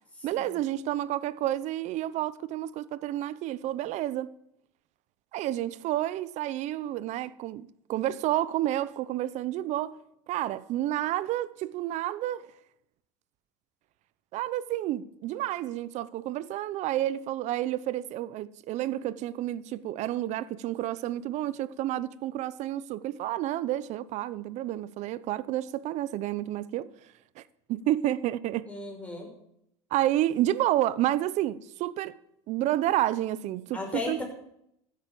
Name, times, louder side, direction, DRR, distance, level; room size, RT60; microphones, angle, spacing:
voice 1, 0.2-4.3 5.3-10.0 10.3-12.5 14.3-26.9 27.4-27.5 27.7-28.7 29.9-32.1 32.5-33.8 34.1-34.2, right 13 dB, 55° right, 0.8 m, -30 dB
voice 2, 28.7-29.3 33.7-34.2, left 2 dB, 10° left, 6.1 m, -35 dB
15.0 x 8.5 x 7.8 m
supercardioid pair, 105°, 14 cm